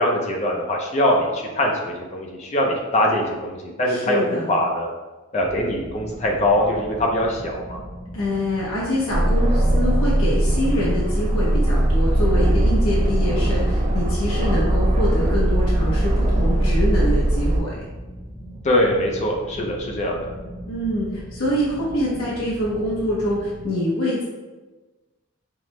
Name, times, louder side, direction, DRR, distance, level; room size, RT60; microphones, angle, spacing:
voice 1, 0.0-4.9 5.3-7.8 18.6-20.3, left 1 dB, 30° left, 0 dB, 0.4 m, -22 dB
voice 2, 3.9-4.5 8.1-17.8 20.7-24.2, equal, 80° left, -5 dB, 0.7 m, -25 dB
sound 1, 5.4-23.7, equal, 5° left, 0.8 m, -38 dB
Aircraft, 9.1-17.6, right 1 dB, 30° right, 0.4 m, -19 dB
5.6 x 2.0 x 3.1 m, 1.2 s
head